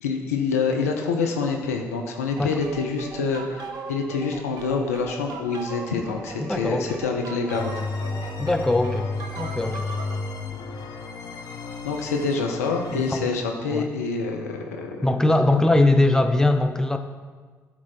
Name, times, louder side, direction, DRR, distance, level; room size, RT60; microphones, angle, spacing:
voice 1, 0.0-7.7 11.8-15.1 15.5-15.6, left 4 dB, 85° left, 3 dB, 0.6 m, -26 dB
sound 1, 2.4-10.1, right 4 dB, 55° right, 0.9 m, -39 dB
voice 2, 6.4-7.0 8.4-9.1 9.4-9.9 12.9-13.3 13.6-13.9 15.0-17.0, left 2 dB, 5° left, 7 dB, 0.7 m, -21 dB
sound 2, 7.5-13.2, left 4 dB, 55° left, 1.0 m, -32 dB
11.0 x 4.4 x 4.4 m, 1.5 s
figure-of-eight pair, 45°, 8 cm